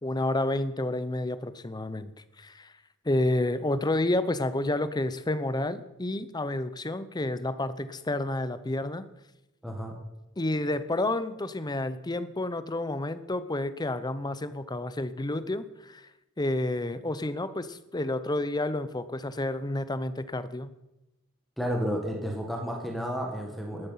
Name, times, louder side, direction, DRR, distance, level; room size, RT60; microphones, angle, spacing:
voice 1, 0.0-2.1 2.4-2.7 3.0-9.1 10.4-16.1 16.4-20.7, left 1 dB, 20° left, 13 dB, 0.7 m, -30 dB
voice 2, 9.6-9.9 21.6-23.9, equal, ahead, 1 dB, 1.8 m, -31 dB
12.5 x 11.5 x 5.8 m, 0.94 s
head